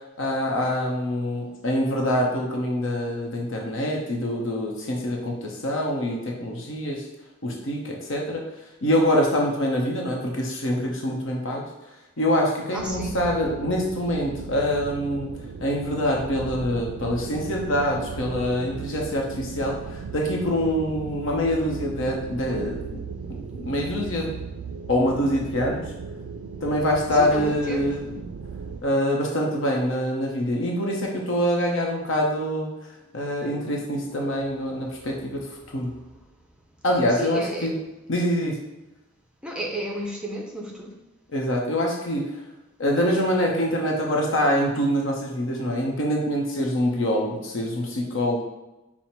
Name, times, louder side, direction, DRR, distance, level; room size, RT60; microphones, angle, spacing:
voice 1, 0.2-7.0 7.4-8.4 8.8-11.6 12.2-15.3 15.6-23.0 23.5-24.3 24.9-25.8 26.6-28.1 28.8-32.7 33.1-35.9 36.8-37.7 38.1-38.6 41.3-42.3 42.8-48.4, equal, 65° left, 0 dB, 0.8 m, -25 dB
voice 2, 12.7-13.2 27.1-28.0 35.7-35.8 37.1-37.8 39.4-41.0, right 1 dB, 5° right, 0 dB, 0.6 m, -33 dB
sound 1, 12.8-28.8, right 5 dB, 60° right, 0.3 m, -37 dB
5.6 x 2.1 x 4.4 m, 1.0 s
head